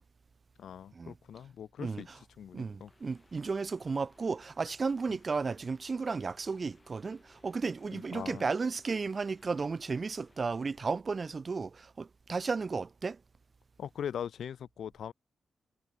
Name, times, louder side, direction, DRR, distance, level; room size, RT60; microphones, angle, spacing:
voice 1, 0.6-2.1 2.4-2.9 7.9-8.5 13.8-15.1, left 9 dB, 85° left, 0.6 m, -41 dB
voice 2, 1.8-2.2 2.5-13.2, right 4 dB, 40° right, 0.4 m, -34 dB
sound 1, 2.9-11.0, left 3 dB, 25° left, 4.5 m, -65 dB
cardioid pair, 85°, 0 cm